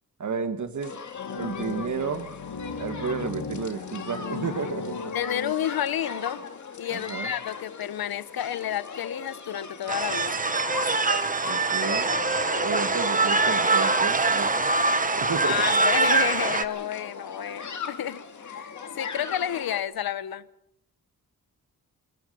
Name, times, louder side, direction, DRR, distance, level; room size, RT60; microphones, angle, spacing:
voice 1, 0.2-1.0 1.4-2.3 2.8-5.0 6.9-7.3 11.4-12.1 12.6-14.7 15.2-15.6, right 5 dB, 55° right, 9 dB, 1.9 m, -32 dB
sound 1, 0.8-19.8, left 5 dB, 55° left, 2.2 m, -39 dB
sound 2, 1.1-6.1, left 4 dB, 70° left, 2.2 m, -36 dB
voice 2, 5.1-6.4 6.8-10.4 15.4-20.4, left 10 dB, 85° left, 16 dB, 0.9 m, -30 dB
sound 3, 9.9-16.6, right 3 dB, 25° right, 1.2 m, -24 dB
25.5 x 21.5 x 5.4 m, 0.77 s
wide cardioid pair, 135°, 35 cm